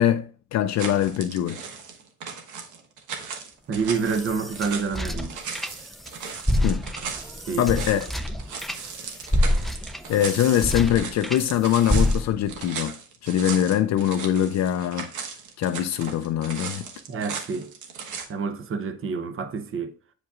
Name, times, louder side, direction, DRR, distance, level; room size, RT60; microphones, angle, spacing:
voice 1, 0.0-1.6 6.6-6.8 7.6-8.1 9.4-9.5 10.1-15.1 15.6-16.9, left 10 dB, 60° left, 0.4 m, -23 dB
sound 1, 0.8-18.3, right 6 dB, 75° right, 1.2 m, -37 dB
voice 2, 3.7-5.4 7.5-7.7 17.1-17.7 18.3-20.0, right 5 dB, 45° right, 0.8 m, -28 dB
sound 2, 3.8-6.1 6.4-11.5 11.9-12.6, left 1 dB, ahead, 0.4 m, -27 dB
8.2 x 4.9 x 2.4 m
cardioid pair, 90°, 30 cm